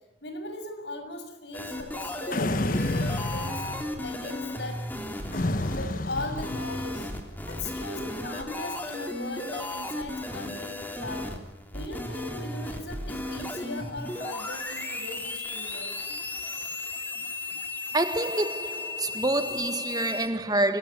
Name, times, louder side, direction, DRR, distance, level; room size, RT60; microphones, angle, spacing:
voice 1, 0.2-3.6 4.0-4.9 5.6-7.1 7.5-11.3 11.7-16.0, left 2 dB, 80° left, 6.3 m, -38 dB
sound 1, 1.5-20.3, left 2 dB, 10° left, 3.4 m, -35 dB
sound 2, 2.3-4.2 5.3-7.1, left 1 dB, 50° left, 1.2 m, -30 dB
voice 2, 17.9-20.8, right 2 dB, 20° right, 1.5 m, -27 dB
25.5 x 21.5 x 9.7 m
head